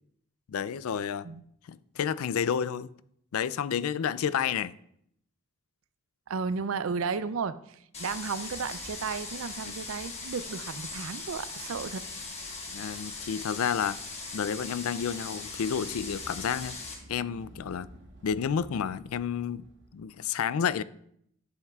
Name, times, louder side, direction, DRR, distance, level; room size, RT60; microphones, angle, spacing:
voice 1, 0.5-1.3 1.7-2.9 3.3-4.8 9.7-9.8 12.7-14.0 14.3-16.8 17.1-17.9 18.2-19.6 19.9-20.8, left 7 dB, 80° left, 0.4 m, -30 dB
voice 2, 6.3-12.0 12.5-12.6, right 5 dB, 70° right, 0.4 m, -34 dB
sound 1, 7.9-17.0, left 3 dB, 30° left, 1.4 m, -40 dB
sound 2, 15.3-20.0, right 1 dB, 55° right, 1.2 m, -52 dB
11.0 x 7.2 x 2.4 m
head